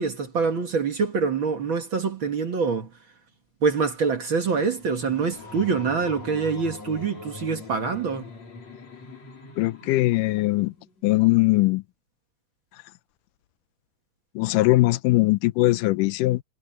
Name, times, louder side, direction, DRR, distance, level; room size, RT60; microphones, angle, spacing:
voice 1, 0.0-2.9 3.6-8.3, right 5 dB, 45° right, 2.0 m, -25 dB
sound 1, 4.0-11.2, left 4 dB, 55° left, 5.5 m, -43 dB
voice 2, 9.6-10.7 11.0-11.8 14.4-16.4, left 19 dB, 85° left, 2.2 m, -20 dB
omnidirectional pair, 3.7 m